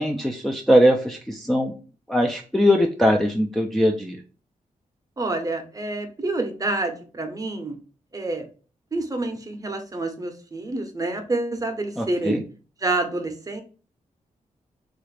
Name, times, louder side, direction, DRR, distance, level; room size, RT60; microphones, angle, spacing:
voice 1, 0.0-1.7 2.1-4.2 12.0-12.4, equal, ahead, 1 dB, 0.4 m, -21 dB
voice 2, 5.2-7.8 8.1-8.4 8.9-12.4 12.8-13.6, right 2 dB, 25° right, 5 dB, 0.7 m, -28 dB
3.1 x 2.4 x 3.2 m, 0.37 s
cardioid pair, 80°, 14 cm